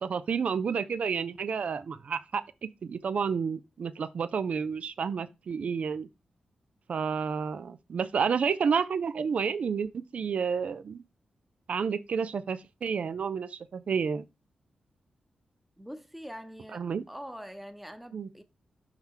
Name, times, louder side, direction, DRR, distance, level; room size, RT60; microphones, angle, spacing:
voice 1, 0.0-6.1 6.9-11.0 11.7-14.2 16.7-17.0 18.1-18.3, right 6 dB, 65° right, 0.4 m, -30 dB
voice 2, 15.8-18.4, equal, 5° right, 0.9 m, -44 dB
5.7 x 3.8 x 4.3 m
cardioid pair, 65°, 2 cm